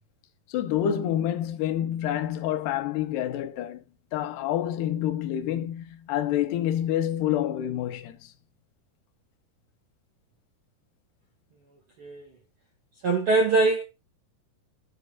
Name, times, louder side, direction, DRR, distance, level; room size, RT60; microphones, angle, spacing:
voice 1, 0.5-3.8 4.1-8.3, left 11 dB, 80° left, 2.9 m, -28 dB
voice 2, 13.0-13.8, right 3 dB, 70° right, 1.3 m, -22 dB
6.8 x 4.7 x 5.7 m
omnidirectional pair, 4.7 m